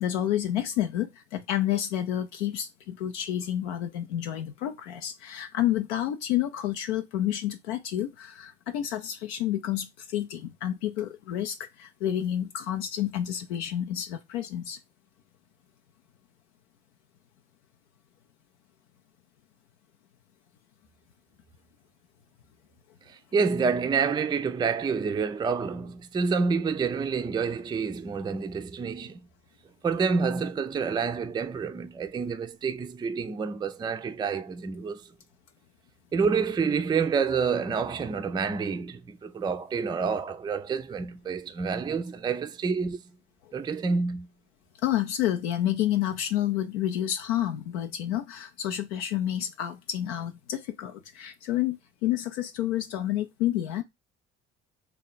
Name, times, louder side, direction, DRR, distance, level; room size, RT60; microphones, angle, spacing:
voice 1, 0.0-14.8 44.8-53.8, left 12 dB, 75° left, 0.5 m, -29 dB
voice 2, 23.1-29.2 29.8-35.0 36.1-43.0 43.5-44.3, right 5 dB, 15° right, 0.4 m, -28 dB
3.5 x 2.3 x 3.9 m
hypercardioid pair, 50°, 34 cm